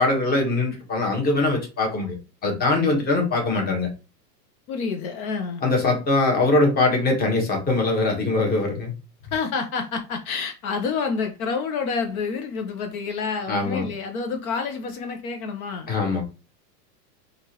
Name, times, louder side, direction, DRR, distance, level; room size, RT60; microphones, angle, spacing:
voice 1, 0.0-2.2 2.4-3.9 5.6-8.9 13.5-13.9 15.9-16.2, left 2 dB, 20° left, 1.1 m, -22 dB
voice 2, 4.7-5.6 9.3-15.9, left 5 dB, 60° left, 0.8 m, -28 dB
3.5 x 2.5 x 2.8 m
hypercardioid pair, 125°, 48 cm